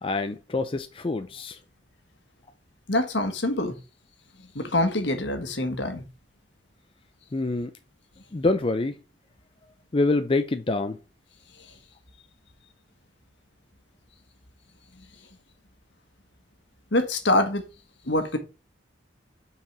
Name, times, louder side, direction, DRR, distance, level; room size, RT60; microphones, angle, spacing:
voice 1, 0.0-1.6 7.3-7.7 8.3-9.0 9.9-11.0, left 2 dB, 30° left, 0.5 m, -26 dB
voice 2, 2.9-3.7 4.5-6.0 16.9-17.6 18.1-18.4, left 1 dB, 70° left, 1.5 m, -25 dB
5.9 x 4.7 x 5.9 m
head